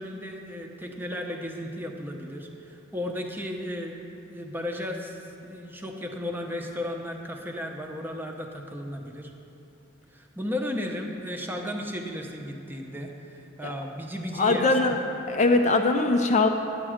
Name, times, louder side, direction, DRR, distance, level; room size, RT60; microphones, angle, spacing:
voice 1, 0.0-9.3 10.1-15.0, left 1 dB, 10° right, 2 dB, 0.7 m, -35 dB
voice 2, 14.4-15.0 15.3-16.5, left 3 dB, 35° left, 4 dB, 0.5 m, -21 dB
9.8 x 8.3 x 5.0 m, 2.8 s
head